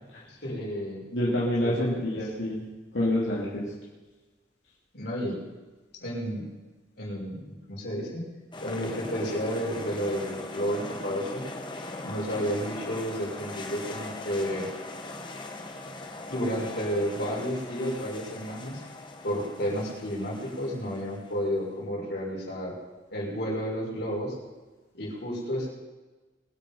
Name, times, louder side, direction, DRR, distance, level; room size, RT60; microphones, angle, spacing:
voice 1, 0.4-1.0 1.6-2.2 4.9-5.4 6.0-6.4 7.0-8.2 8.6-11.4 12.0-14.7 16.3-18.8 19.2-22.7 23.1-24.3 24.9-25.7, equal, 65° left, -4 dB, 5.7 m, -31 dB
voice 2, 1.1-2.7 2.9-3.7, left 1 dB, 85° left, -7 dB, 2.8 m, -27 dB
sound 1, 8.5-21.6, left 2 dB, 25° left, 1.6 m, -40 dB
23.0 x 8.5 x 5.6 m, 1.2 s
head